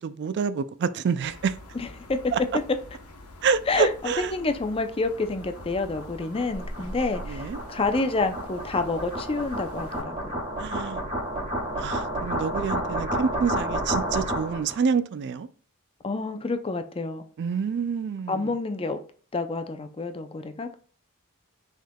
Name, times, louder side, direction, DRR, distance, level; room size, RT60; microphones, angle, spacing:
voice 1, 0.0-1.5 2.3-2.4 3.4-4.3 6.8-7.0 7.2-7.6 10.6-11.0 11.8-15.5 17.4-18.5, right 6 dB, 50° right, 0.3 m, -27 dB
sound 1, 1.2-10.0, left 1 dB, 85° left, 1.1 m, -43 dB
voice 2, 1.8-2.2 3.7-10.4 16.0-17.2 18.3-19.0 19.3-20.8, left 3 dB, 25° left, 0.5 m, -28 dB
sound 2, 4.8-14.8, right 1 dB, 30° right, 2.0 m, -31 dB
6.3 x 3.6 x 2.3 m
head